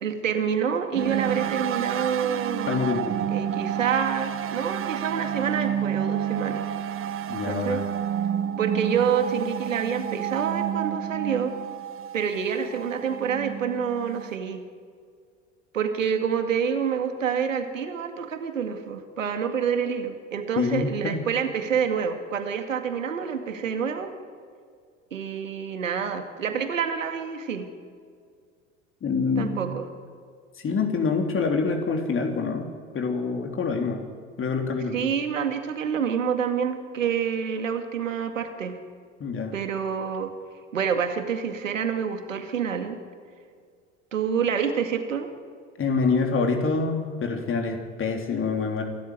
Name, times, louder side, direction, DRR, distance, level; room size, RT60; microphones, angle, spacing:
voice 1, 0.0-2.7 3.3-6.6 7.4-7.8 8.6-11.5 12.1-14.6 15.7-24.1 25.1-27.7 29.4-29.9 34.9-38.8 39.5-40.3 40.7-43.0 44.1-45.3, right 7 dB, 80° right, 7 dB, 2.2 m, -27 dB
sound 1, 0.9-14.4, right 9 dB, 35° right, 1.2 m, -30 dB
voice 2, 2.7-3.2 7.3-7.8 20.6-21.2 29.0-29.7 30.6-32.7 32.9-34.0 34.4-35.1 39.2-39.5 45.8-48.8, left 4 dB, 35° left, 3 dB, 3.4 m, -26 dB
27.5 x 14.0 x 9.5 m, 2.1 s
figure-of-eight pair, 65°, 38 cm